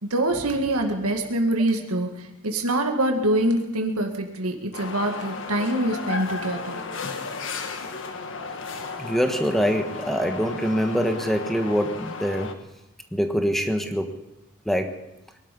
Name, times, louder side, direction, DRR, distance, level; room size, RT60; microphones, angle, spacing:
voice 1, 0.0-6.8, right 1 dB, 85° right, 3 dB, 2.1 m, -25 dB
sound 1, 4.7-12.5, left 4 dB, 60° left, 1.5 m, -34 dB
voice 2, 9.0-12.6 13.1-14.2 14.6-15.0, equal, ahead, 5 dB, 1.4 m, -24 dB
22.5 x 12.0 x 5.4 m, 0.88 s
head